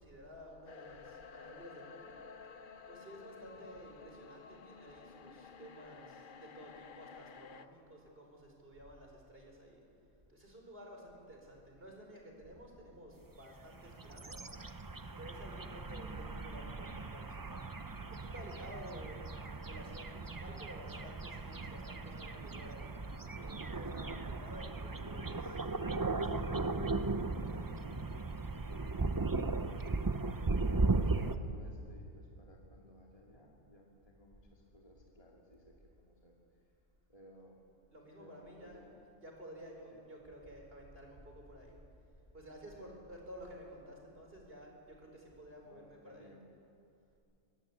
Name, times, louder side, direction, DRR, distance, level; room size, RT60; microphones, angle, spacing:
voice 1, 0.0-2.2 2.9-9.8 10.3-14.4 15.2-17.6 18.0-19.2 19.6-22.9 23.4-25.6 26.1-27.6 37.9-38.8 39.2-41.7 42.3-46.3, equal, 45° right, 1 dB, 4.9 m, -52 dB
sound 1, 0.7-7.7, left 5 dB, 45° left, 0.8 m, -53 dB
voice 2, 3.1-3.6 28.5-29.1 29.4-29.9 30.5-36.3 37.1-37.6 38.1-39.0 39.9-40.0 42.7-43.0 45.6-46.4, equal, 25° left, -2 dB, 2.4 m, -59 dB
sound 2, 13.6-31.4, right 3 dB, 25° right, 0.4 m, -37 dB
24.5 x 18.0 x 8.6 m, 2.5 s
omnidirectional pair, 1.4 m